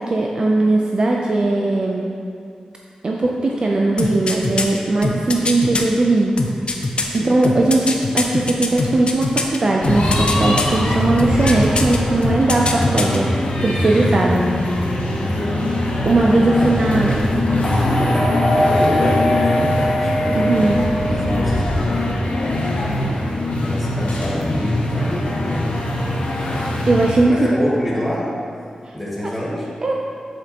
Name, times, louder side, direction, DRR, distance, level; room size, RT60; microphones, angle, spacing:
voice 1, 0.0-2.0 3.0-6.3 7.1-13.3 13.6-14.4 16.1-17.1 20.3-20.8 26.9-27.7 29.8-29.9, right 2 dB, 40° right, -1 dB, 0.5 m, -18 dB
sound 1, 4.0-5.8 6.4-9.6 9.8-10.8 11.2-12.0 12.2-13.2 13.5-13.6, left 3 dB, 50° left, 0.6 m, -22 dB
voice 2, 7.0-7.4 15.2-15.4 16.5-20.7 21.1-23.3 23.6-25.8 26.1-26.8 27.2-28.4 28.9-29.7, left 1 dB, ahead, -7 dB, 1.7 m, -28 dB
sound 2, 9.8-27.1, left 1 dB, 80° left, 1.1 m, -21 dB
sound 3, 17.6-21.9, left 1 dB, 20° left, 1.6 m, -22 dB
7.9 x 7.5 x 2.9 m, 2.3 s
wide cardioid pair, 145°, 2 cm